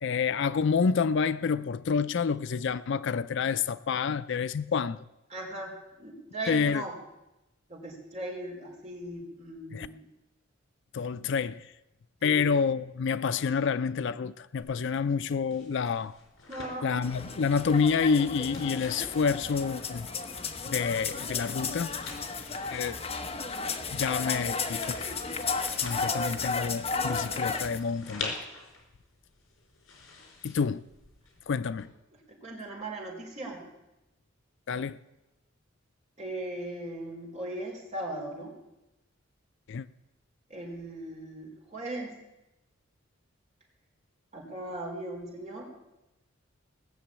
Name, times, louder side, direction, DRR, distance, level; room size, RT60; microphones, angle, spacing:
voice 1, 0.0-5.0 6.5-6.8 9.7-9.9 10.9-11.7 12.2-16.2 16.8-20.1 20.7-21.9 22.7-23.0 23.9-25.0 25.8-28.4 30.4-30.8 31.5-31.9 34.7-35.0 39.7-39.9, left 5 dB, 60° left, 0.4 m, -28 dB
voice 2, 5.3-6.9 7.7-10.0 12.2-12.4 16.5-17.0 32.3-33.6 36.2-38.5 40.5-42.1 44.3-45.7, right 1 dB, 35° right, 4.2 m, -38 dB
sound 1, 14.6-31.8, left 3 dB, 80° left, 4.5 m, -47 dB
sound 2, 17.0-27.8, left 4 dB, 30° left, 1.0 m, -33 dB
18.5 x 6.9 x 8.7 m
head